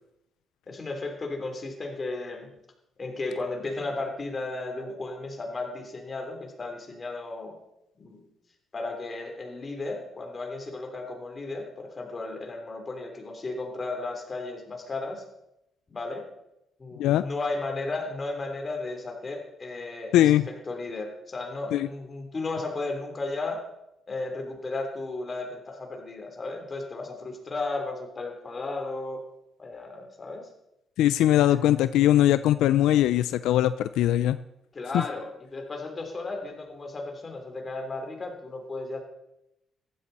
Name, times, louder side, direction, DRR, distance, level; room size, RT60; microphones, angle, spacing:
voice 1, 0.7-2.5 3.0-7.6 8.0-8.3 8.7-15.2 15.9-16.2 16.8-23.6 24.1-29.2 29.6-30.5 31.2-31.8 34.7-39.0, left 3 dB, 35° left, 3 dB, 3.4 m, -34 dB
voice 2, 20.1-20.5 21.7-21.9 31.0-34.4 34.9-35.0, left 13 dB, 90° left, 14 dB, 0.4 m, -21 dB
15.5 x 12.5 x 4.2 m, 0.86 s
cardioid pair, 90°, 0 cm